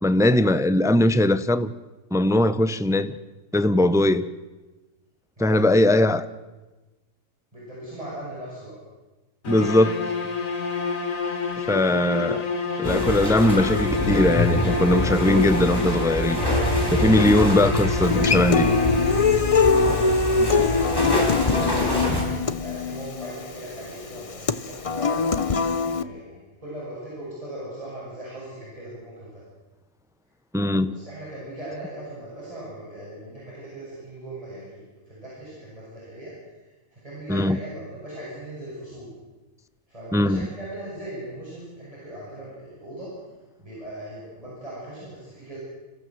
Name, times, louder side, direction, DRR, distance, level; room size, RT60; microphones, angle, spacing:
voice 1, 0.0-1.7 2.1-3.2 3.5-4.3 5.4-6.3 9.5-10.0 11.7-12.5 12.8-16.4 16.9-18.7 30.5-31.0 37.3-37.6 40.1-40.5, left 1 dB, 5° right, 0.5 m, -20 dB
voice 2, 5.4-5.8 7.5-8.7 11.6-12.1 20.1-22.0 22.6-25.4 26.0-29.4 30.9-36.3 36.9-39.1 39.9-43.1 43.6-45.6, right 1 dB, 25° right, 7.9 m, -39 dB
sound 1, 9.4-19.7, left 4 dB, 80° left, 2.3 m, -28 dB
sound 2, 12.8-22.2, left 1 dB, 15° left, 5.4 m, -25 dB
Human voice / Acoustic guitar, 18.0-26.0, left 4 dB, 30° left, 0.7 m, -23 dB
29.0 x 15.5 x 7.9 m
omnidirectional pair, 1.4 m